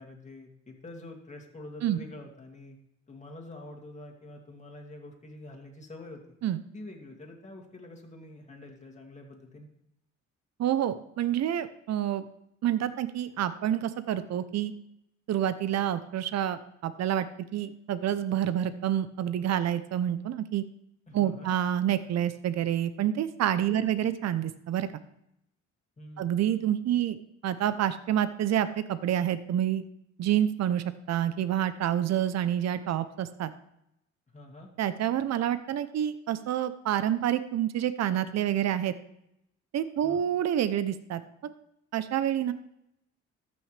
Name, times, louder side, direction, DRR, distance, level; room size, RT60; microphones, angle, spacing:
voice 1, 0.0-2.8 3.1-6.2 6.7-9.7 21.1-21.5 23.7-23.9 26.0-26.3 34.3-34.7 40.0-40.2, left 2 dB, 25° left, 1 dB, 2.5 m, -46 dB
voice 2, 10.6-12.2 12.6-14.7 15.3-17.3 17.5-20.6 21.1-24.9 26.2-27.2 27.4-29.8 30.2-33.5 34.8-38.9 39.7-41.2 41.9-42.5, right 11 dB, 60° right, 13 dB, 0.7 m, -28 dB
14.0 x 6.3 x 3.3 m, 0.78 s
cardioid pair, 90°, 30 cm